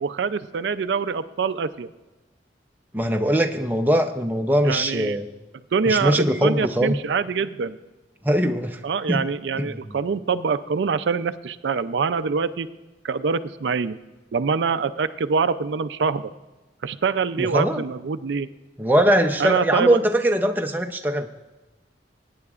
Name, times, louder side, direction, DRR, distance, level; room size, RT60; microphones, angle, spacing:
voice 1, 0.0-1.9 4.6-5.2 5.7-7.7 8.8-12.7 13.0-14.0 14.3-16.3 16.8-18.5 19.4-20.0, right 5 dB, 75° right, 11 dB, 0.4 m, -24 dB
voice 2, 2.9-5.3 5.9-7.0 8.2-8.8 9.1-9.2 9.6-9.8 17.4-17.8 18.8-21.3, equal, 10° right, 4 dB, 0.6 m, -21 dB
21.0 x 9.6 x 2.4 m, 1.2 s
head